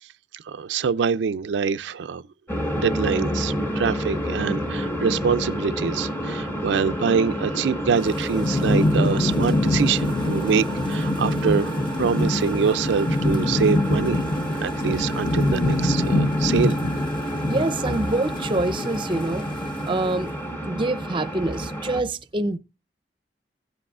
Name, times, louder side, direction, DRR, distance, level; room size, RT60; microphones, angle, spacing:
voice 1, 0.3-2.2 2.7-14.2 14.6-16.8, right 6 dB, 85° right, 0.4 m, -25 dB
sound 1, 2.5-22.0, equal, 10° left, 1.1 m, -29 dB
Thunderstorm / Rain, 8.0-20.2, left 2 dB, 30° left, 0.6 m, -25 dB
voice 2, 17.5-19.5 19.8-20.3 20.7-22.6, right 2 dB, 30° right, 0.5 m, -25 dB
16.5 x 7.6 x 2.4 m
head